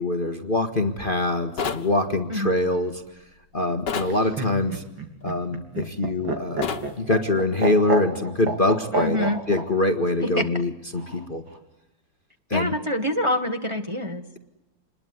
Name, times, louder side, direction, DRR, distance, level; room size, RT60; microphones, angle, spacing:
voice 1, 0.0-3.0 3.5-4.8 5.2-6.7 7.0-11.4 12.5-12.7, left 2 dB, 30° left, 7 dB, 1.6 m, -24 dB
sound 1, 1.6-1.9 3.9-4.2 6.6-6.9, left 6 dB, 65° left, 2.1 m, -28 dB
Laughter, 4.0-9.6 10.9-11.6, right 3 dB, 80° right, 3.8 m, -29 dB
voice 2, 8.9-9.4 10.2-10.5 12.5-14.2, left 1 dB, 15° right, 5 dB, 1.7 m, -26 dB
28.5 x 21.5 x 9.5 m, 0.95 s
omnidirectional pair, 2.1 m